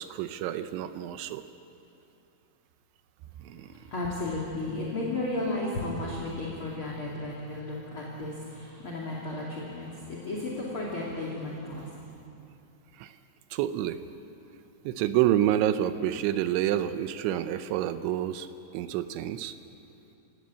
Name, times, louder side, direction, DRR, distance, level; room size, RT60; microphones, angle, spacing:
voice 1, 0.0-1.4 3.4-3.8 12.9-13.2 13.5-14.0 14.8-18.5 18.7-19.5, right 12 dB, 80° right, 11 dB, 3.0 m, -28 dB
voice 2, 3.5-11.9, left 2 dB, 35° left, -4 dB, 2.9 m, -34 dB
28.5 x 17.5 x 8.4 m, 2.8 s
omnidirectional pair, 5.5 m